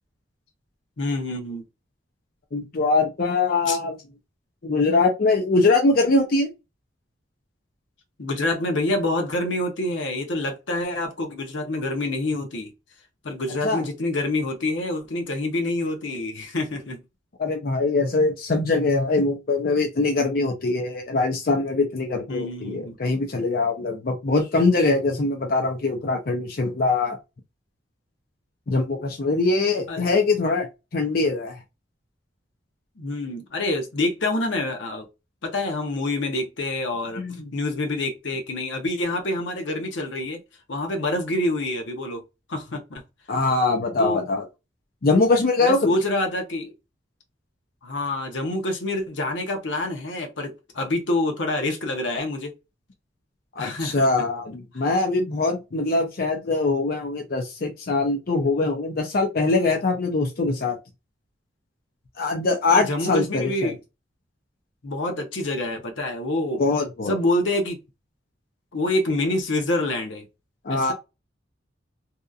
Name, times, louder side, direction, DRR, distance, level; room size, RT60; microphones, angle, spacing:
voice 1, 1.0-1.6 3.7-3.8 8.2-12.7 13.2-17.0 22.3-23.0 29.9-30.1 33.0-35.1 35.4-37.2 37.5-40.4 40.7-42.2 42.5-43.0 44.0-44.2 45.6-46.7 47.8-52.5 53.6-54.1 62.7-63.8 64.8-66.6 67.1-67.8 68.7-70.3 70.7-70.9, left 2 dB, 80° left, 0.8 m, -26 dB
voice 2, 2.5-4.0 4.6-6.5 13.6-13.8 17.4-27.2 28.7-30.7 30.9-31.6 37.2-37.4 43.3-44.4 45.0-45.9 53.6-60.8 62.2-63.7 66.6-67.1 70.6-70.9, left 3 dB, 50° left, 0.5 m, -22 dB
2.8 x 2.4 x 2.3 m
head